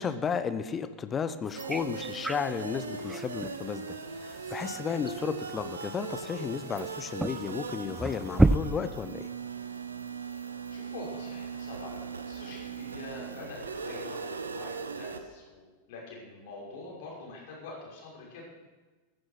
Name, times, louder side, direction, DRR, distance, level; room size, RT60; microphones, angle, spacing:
voice 1, 0.0-9.3, left 6 dB, 20° left, 12 dB, 0.9 m, -33 dB
sound 1, 1.4-8.6, right 2 dB, 5° right, 0.5 m, -32 dB
sound 2, 1.6-15.2, right 5 dB, 75° right, 1.2 m, -39 dB
voice 2, 4.5-4.9 10.2-10.4 10.7-18.4, left 2 dB, 50° left, -3 dB, 6.1 m, -45 dB
14.5 x 14.0 x 6.1 m, 1.2 s
figure-of-eight pair, 90°, 0 cm